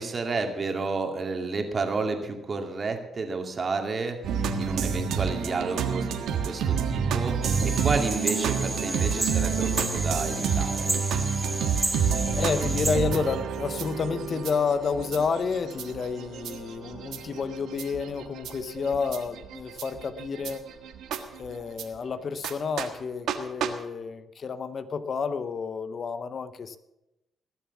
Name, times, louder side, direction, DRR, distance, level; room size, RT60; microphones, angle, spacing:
voice 1, 0.0-4.2 4.6-7.4 7.6-10.9, right 3 dB, 40° right, 4 dB, 2.2 m, -31 dB
sound 1, 4.2-21.8 22.4-22.5 22.8-22.9 23.3-23.4 23.6-23.7, right 7 dB, 80° right, 1.5 m, -29 dB
sound 2, 7.4-13.0, right 2 dB, 10° right, 3.0 m, -32 dB
voice 2, 12.3-20.6 21.4-26.8, left 5 dB, 50° left, 12 dB, 0.8 m, -30 dB
19.5 x 7.2 x 7.1 m, 0.94 s
cardioid pair, 90°, 0 cm